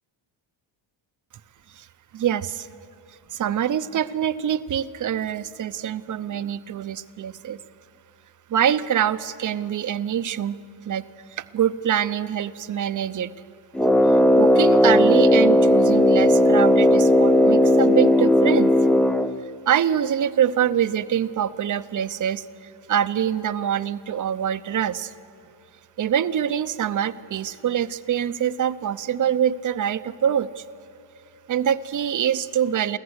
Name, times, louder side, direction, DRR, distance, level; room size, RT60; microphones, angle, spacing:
voice 1, 2.1-2.7 3.3-7.6 8.5-10.6 10.9-11.0 11.3-13.3 14.4-18.7 19.7-22.4 22.9-25.1 26.0-30.6 31.5-33.0, right 9 dB, 40° right, 14 dB, 0.7 m, -24 dB
Brass instrument, 13.7-19.4, left 1 dB, ahead, 0.5 m, -16 dB
24.5 x 14.5 x 8.0 m, 2.5 s
cardioid pair, 95°, 48 cm